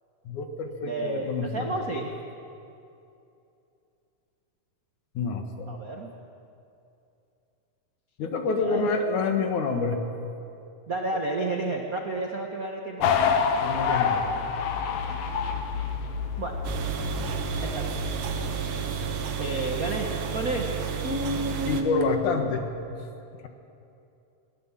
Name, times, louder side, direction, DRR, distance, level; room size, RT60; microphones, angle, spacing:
voice 1, 0.3-1.7 5.1-5.7 8.2-10.0 13.6-14.2 18.7-19.1 21.3-21.4 21.7-22.7, left 4 dB, 65° left, 5 dB, 2.9 m, -28 dB
voice 2, 0.8-2.1 5.7-6.1 8.4-8.9 10.9-13.1 13.8-14.5 16.4-16.5 17.0-17.3 17.6-17.9 19.1-20.1 20.3-20.7 20.9-22.6, right 2 dB, 50° right, 1 dB, 1.0 m, -31 dB
sound 1, 13.0-18.5, left 6 dB, 85° left, 3.0 m, -27 dB
sound 2, 16.6-21.8, right 7 dB, 80° right, 3.0 m, -31 dB
21.0 x 18.0 x 7.5 m, 2.7 s
omnidirectional pair, 3.9 m